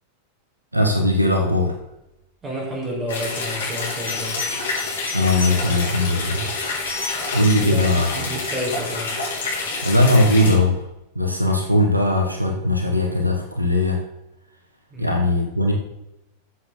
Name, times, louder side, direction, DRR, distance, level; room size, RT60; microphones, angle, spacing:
voice 1, 0.7-1.8 5.1-6.5 7.3-8.3 9.8-10.8 11.1-14.0 15.0-15.7, left 1 dB, 85° right, 3 dB, 1.6 m, -19 dB
voice 2, 2.4-4.4 7.5-9.2 14.9-15.2, equal, 20° right, -1 dB, 4.9 m, -30 dB
sound 1, 3.1-10.5, left 3 dB, 65° left, 4.5 m, -28 dB
Bell, 4.1-6.0 6.7-7.8 10.5-10.7, left 3 dB, 85° left, 3.2 m, -35 dB
14.0 x 7.8 x 4.0 m, 0.89 s
figure-of-eight pair, 90°, 0 cm